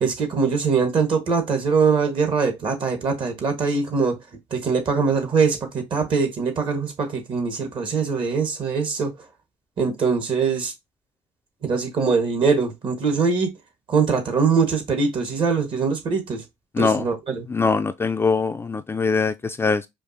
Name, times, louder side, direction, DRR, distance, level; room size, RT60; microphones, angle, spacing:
voice 1, 0.0-4.2 4.5-9.1 9.8-10.7 11.6-13.5 13.9-16.4 16.8-17.5, right 5 dB, 50° right, 1.4 m, -22 dB
voice 2, 16.7-17.1 17.5-19.9, left 4 dB, 20° left, 0.3 m, -22 dB
5.0 x 2.5 x 2.6 m
supercardioid pair, 80°, 11 cm